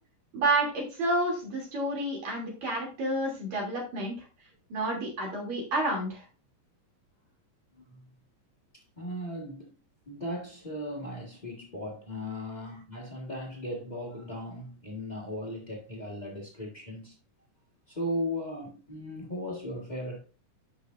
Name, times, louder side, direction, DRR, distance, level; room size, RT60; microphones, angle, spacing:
voice 1, 0.3-4.1 4.7-6.2, right 1 dB, 55° right, 4.1 m, -29 dB
voice 2, 9.0-9.7 10.1-17.1 17.9-20.2, equal, 50° left, 0.5 m, -37 dB
9.9 x 6.5 x 2.6 m
omnidirectional pair, 3.9 m